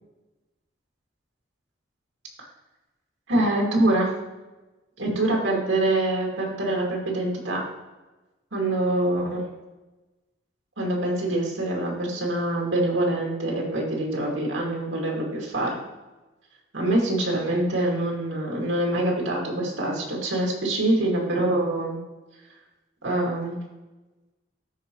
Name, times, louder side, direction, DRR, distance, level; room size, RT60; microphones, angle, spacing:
voice 1, 3.3-4.1 5.0-7.6 8.5-9.4 10.8-15.8 16.7-22.0 23.0-23.6, right 1 dB, 80° right, -1 dB, 2.4 m, -25 dB
13.0 x 5.0 x 3.2 m, 1.1 s
head